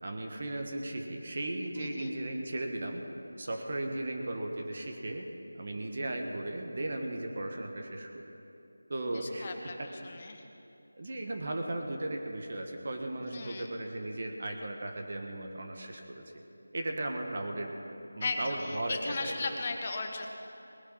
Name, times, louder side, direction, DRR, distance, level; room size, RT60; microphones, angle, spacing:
voice 1, 0.0-3.0 3.4-5.3 5.5-8.2 8.9-9.5 9.8-9.9 10.2-10.3 11.0-16.2 16.7-17.7 18.1-19.6, right 1 dB, 45° right, 2 dB, 1.4 m, -36 dB
voice 2, 1.7-2.1 9.1-9.8 10.0-10.4 13.3-13.7 18.2-20.3, left 3 dB, 30° left, 4 dB, 1.1 m, -36 dB
19.5 x 10.0 x 5.5 m, 2.8 s
figure-of-eight pair, 170°, 0 cm